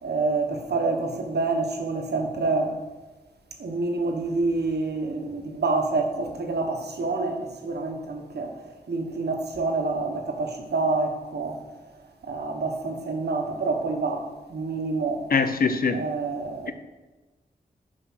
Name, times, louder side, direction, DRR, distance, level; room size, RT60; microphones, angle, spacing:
voice 1, 0.0-2.8 3.6-8.6 8.9-11.6 12.2-14.2 14.5-15.2 15.9-16.7, right 3 dB, 85° right, 3 dB, 1.4 m, -27 dB
voice 2, 15.3-16.0, left 5 dB, 60° left, 9 dB, 0.8 m, -22 dB
9.8 x 5.0 x 6.1 m, 1.2 s
wide cardioid pair, 95°, 17 cm